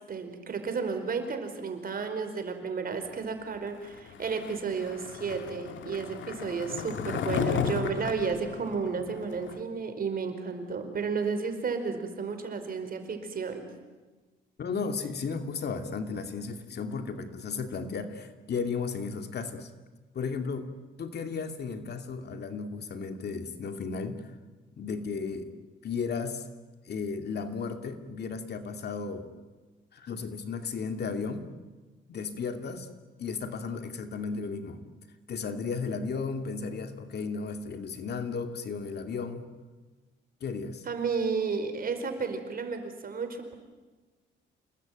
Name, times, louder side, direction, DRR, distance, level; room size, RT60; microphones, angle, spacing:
voice 1, 0.1-13.6 40.8-43.5, right 5 dB, 50° right, 7 dB, 4.8 m, -32 dB
Skateboard, 4.1-9.6, left 7 dB, 70° left, 2.2 m, -34 dB
voice 2, 14.6-19.7 20.1-24.3 24.8-25.5 25.8-26.4 26.9-29.3 29.9-31.5 32.1-32.9 33.2-34.8 35.3-39.5 40.4-40.9, left 5 dB, 55° left, 7 dB, 2.6 m, -34 dB
28.5 x 20.0 x 9.3 m, 1.3 s
cardioid pair, 90°, 20 cm